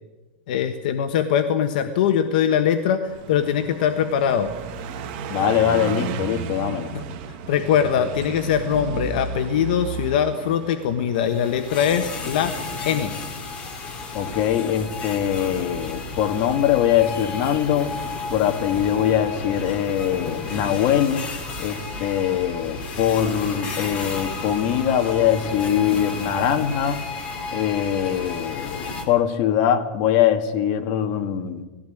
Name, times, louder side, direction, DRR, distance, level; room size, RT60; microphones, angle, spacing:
voice 1, 0.5-4.5 6.9-7.0 7.5-12.6 12.8-13.1, left 8 dB, 55° left, 6 dB, 1.3 m, -22 dB
Car passing by, 3.1-11.5, right 6 dB, 40° right, 1.9 m, -33 dB
voice 2, 5.3-6.9 14.1-17.9 18.3-21.2 21.6-27.0 27.5-31.6, left 10 dB, 35° left, 5 dB, 1.8 m, -22 dB
sound 1, 11.1-29.0, left 3 dB, 20° left, 2.7 m, -32 dB
19.5 x 15.5 x 9.2 m, 1.2 s
supercardioid pair, 175°, 6 cm